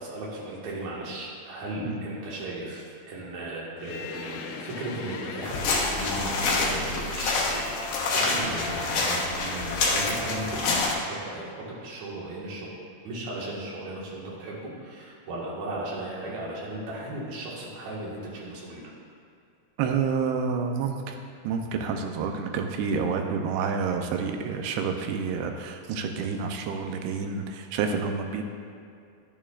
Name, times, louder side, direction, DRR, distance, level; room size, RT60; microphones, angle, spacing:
voice 1, 0.0-12.7 13.0-18.8, right 1 dB, 55° right, -5 dB, 2.6 m, -36 dB
sound 1, 3.8-10.2, left 4 dB, 80° left, 1.9 m, -39 dB
sound 2, 5.4-10.9, left 3 dB, 65° left, 2.3 m, -27 dB
voice 2, 19.8-21.1 21.4-28.5, right 5 dB, 85° right, 4 dB, 2.7 m, -29 dB
11.0 x 9.0 x 2.4 m, 2.5 s
omnidirectional pair, 4.5 m